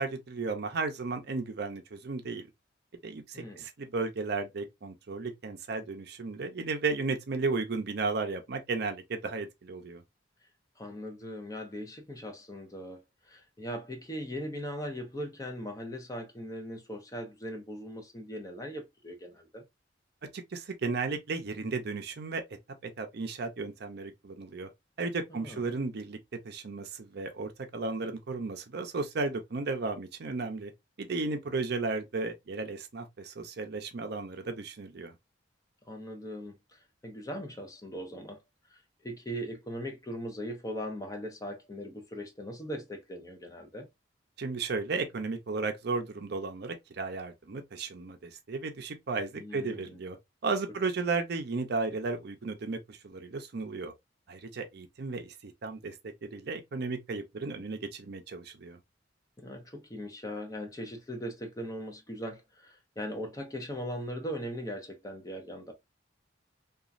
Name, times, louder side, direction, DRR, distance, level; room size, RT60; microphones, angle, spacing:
voice 1, 0.0-2.4 3.0-10.0 20.3-22.6 22.8-24.7 25.0-30.7 31.0-35.1 44.4-50.2 50.4-53.9 54.3-56.0 56.2-58.8, right 3 dB, 60° right, 0.5 m, -34 dB
voice 2, 3.3-3.7 10.8-19.6 25.3-25.7 35.9-38.4 38.7-43.9 49.3-50.0 59.4-65.7, equal, 20° left, 0.6 m, -40 dB
2.9 x 2.3 x 2.4 m
head